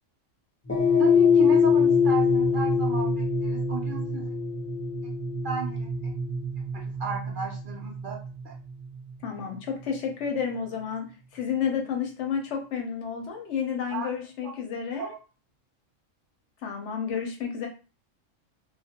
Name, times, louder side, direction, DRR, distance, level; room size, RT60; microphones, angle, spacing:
sound 1, 0.7-9.1, left 5 dB, 20° left, 0.4 m, -24 dB
voice 1, 1.0-4.2 5.4-5.9 6.7-8.2 8.4-8.5 13.9-14.1 14.4-14.5 15.0-15.1, right 4 dB, 65° right, 0 dB, 0.5 m, -34 dB
voice 2, 9.2-15.1 16.6-17.7, left 7 dB, 70° left, 2 dB, 0.8 m, -31 dB
2.3 x 2.0 x 2.7 m, 0.34 s
omnidirectional pair, 1.4 m